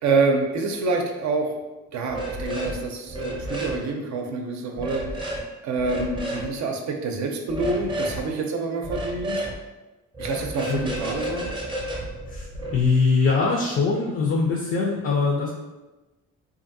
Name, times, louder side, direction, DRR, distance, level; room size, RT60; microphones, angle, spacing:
voice 1, 0.0-1.5 1.9-5.4 5.6-9.5 10.2-11.5, right 3 dB, 65° right, 3 dB, 0.5 m, -27 dB
sound 1, 2.1-2.8 3.1-3.8 4.8-5.4 5.8-6.5 7.5-8.2 8.8-9.6 10.1-12.9, right 1 dB, 15° right, 0.6 m, -31 dB
voice 2, 12.3-15.5, left 4 dB, 45° left, -1 dB, 0.4 m, -22 dB
2.6 x 2.5 x 2.6 m, 1.1 s
cardioid pair, 90°, 30 cm